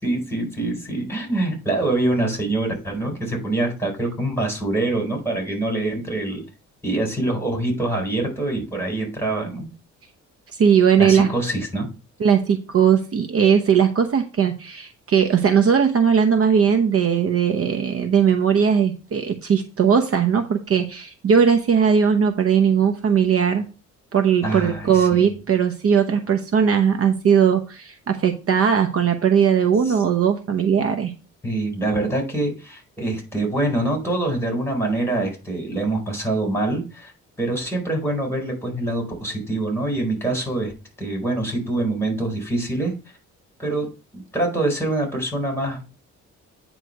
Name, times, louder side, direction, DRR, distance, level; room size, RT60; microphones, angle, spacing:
voice 1, 0.0-6.4 6.8-9.7 11.0-11.9 24.4-25.2 29.9-30.0 31.4-37.1 37.4-40.7 41.0-42.9 43.6-45.9, right 2 dB, 10° left, 2 dB, 4.2 m, -25 dB
voice 2, 10.6-11.3 12.2-23.7 24.1-31.1, right 7 dB, 50° right, 6 dB, 0.9 m, -19 dB
9.1 x 3.2 x 6.4 m, 0.32 s
cardioid pair, 90°, 30 cm